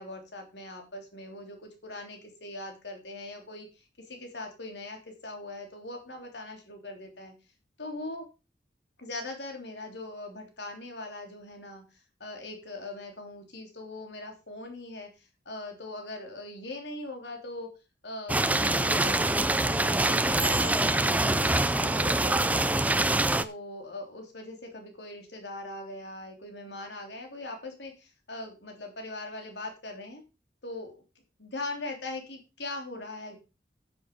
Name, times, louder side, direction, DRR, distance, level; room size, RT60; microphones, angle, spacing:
voice 1, 0.0-7.3 7.8-8.2 9.0-17.7 18.0-22.8 23.4-30.2 30.6-31.0 31.4-33.4, left 2 dB, 70° left, 3 dB, 3.3 m, -41 dB
sound 1, 18.3-23.4, right 2 dB, 10° right, 0.5 m, -25 dB
10.0 x 7.6 x 5.3 m, 0.30 s
head